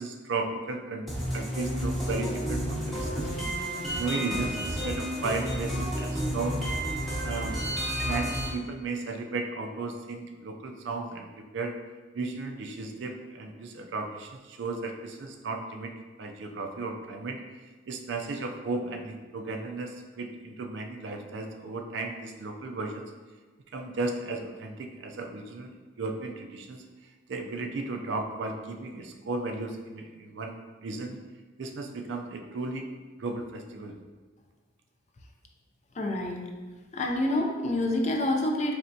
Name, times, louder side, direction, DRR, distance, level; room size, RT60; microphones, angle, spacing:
voice 1, 0.0-3.5 4.0-6.6 7.2-7.6 8.0-11.7 12.1-15.9 16.2-17.4 17.9-23.0 23.7-26.8 27.3-30.6 30.8-31.2 31.6-32.9 33.2-34.0, right 3 dB, 60° right, 3 dB, 0.4 m, -35 dB
sound 1, 1.1-8.5, equal, ahead, 0.7 m, -31 dB
voice 2, 35.9-36.5 36.9-38.7, left 1 dB, 35° left, 2 dB, 0.4 m, -27 dB
4.2 x 3.3 x 2.6 m, 1.4 s
head